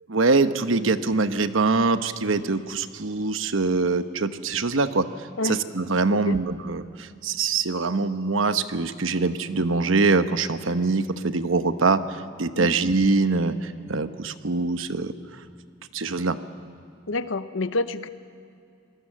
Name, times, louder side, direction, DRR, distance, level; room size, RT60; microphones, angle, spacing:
voice 1, 0.1-5.1 5.4-15.1 15.9-16.4, right 3 dB, 80° right, 10 dB, 1.0 m, -23 dB
voice 2, 17.1-18.1, left 2 dB, 75° left, 12 dB, 0.9 m, -28 dB
26.0 x 19.0 x 7.4 m, 2.4 s
head